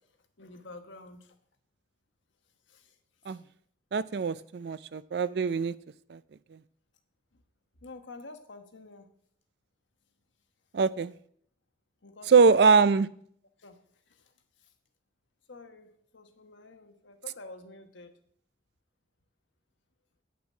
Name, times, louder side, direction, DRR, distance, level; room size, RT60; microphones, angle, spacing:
voice 1, 0.4-1.3 2.7-2.9 3.3-3.4 4.1-4.2 7.8-9.1 12.0-12.8 13.6-13.8 14.1-14.3 15.5-18.2, left 3 dB, 90° left, 7 dB, 1.2 m, -48 dB
voice 2, 3.9-5.7 6.1-6.2 10.7-11.1 12.3-13.1, right 5 dB, 60° right, 17 dB, 0.4 m, -23 dB
9.2 x 5.9 x 7.3 m, 0.64 s
head